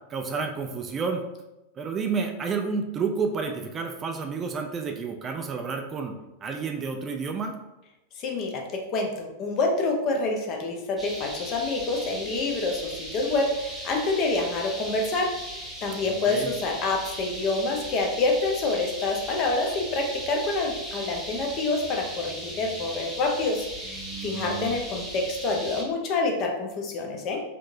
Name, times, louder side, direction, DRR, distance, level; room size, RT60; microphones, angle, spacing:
voice 1, 0.1-1.2 1.8-6.2 6.4-7.6 16.0-16.5 23.9-24.8, right 5 dB, 25° right, 4 dB, 0.3 m, -30 dB
voice 2, 8.2-15.4 15.8-27.4, left 3 dB, 35° left, 2 dB, 0.6 m, -27 dB
sound 1, 11.0-25.8, right 1 dB, 5° right, 0.8 m, -38 dB
3.6 x 2.8 x 2.6 m, 0.97 s
figure-of-eight pair, 90°, 0 cm